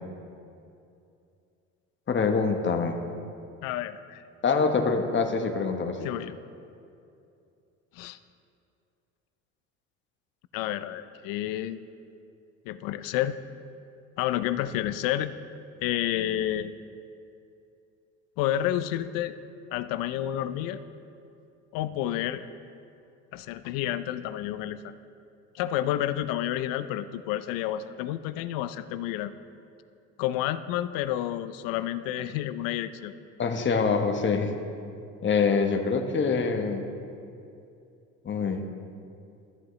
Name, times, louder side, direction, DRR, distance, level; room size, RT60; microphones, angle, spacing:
voice 1, 2.1-3.0 4.4-6.1 33.4-34.5 35.2-36.8 38.2-38.6, left 5 dB, 35° left, 5 dB, 1.0 m, -25 dB
voice 2, 3.6-4.2 6.0-6.4 7.9-8.2 10.5-11.8 12.7-13.4 14.2-15.3 15.8-16.7 18.4-19.4 19.7-20.8 21.7-22.4 23.3-24.9 25.5-29.3 30.2-33.1, left 12 dB, 75° left, 13 dB, 0.5 m, -30 dB
14.0 x 7.4 x 3.1 m, 2.6 s
supercardioid pair, 75°, 35 cm